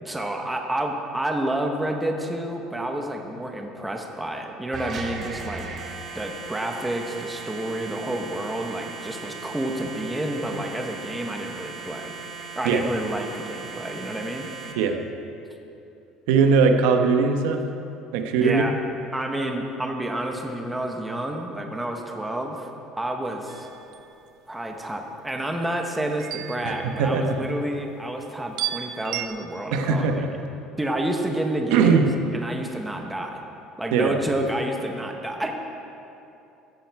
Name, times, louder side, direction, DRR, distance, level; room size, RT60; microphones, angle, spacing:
voice 1, 0.0-5.7 6.1-12.1 12.6-14.5 18.4-18.7 19.1-22.7 23.0-23.7 24.5-30.1 30.8-32.1 32.3-33.4 33.8-35.5, right 1 dB, 5° right, 2 dB, 0.9 m, -29 dB
sound 1, 4.7-14.7, right 4 dB, 35° right, 1.3 m, -38 dB
voice 2, 16.3-17.6 18.1-18.7 26.6-27.6 29.7-30.3 31.7-32.1 33.9-34.1, right 5 dB, 85° right, 5 dB, 1.0 m, -20 dB
sound 2, 23.5-24.0 26.2-27.6 28.6-29.3, right 12 dB, 55° right, 0.5 m, -33 dB
15.5 x 9.4 x 4.7 m, 2.8 s
cardioid pair, 165°, 0 cm